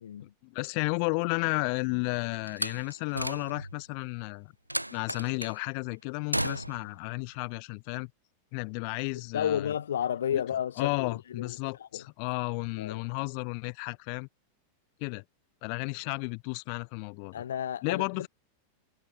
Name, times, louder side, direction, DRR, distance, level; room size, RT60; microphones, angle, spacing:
voice 1, 0.2-4.5 4.9-8.1 8.5-9.7 10.3-10.4 10.8-14.3 15.0-15.2 15.6-17.4 17.8-18.3, left 40 dB or more, 45° left, 1.4 m, -33 dB
Slam, 2.5-3.8 4.7-5.6 6.3-7.0, right 1 dB, 90° right, 1.4 m, -34 dB
voice 2, 9.3-11.5 11.9-12.0 12.8-13.0 17.3-18.0, left 9 dB, 65° left, 0.5 m, -31 dB
figure-of-eight pair, 90°, 0 cm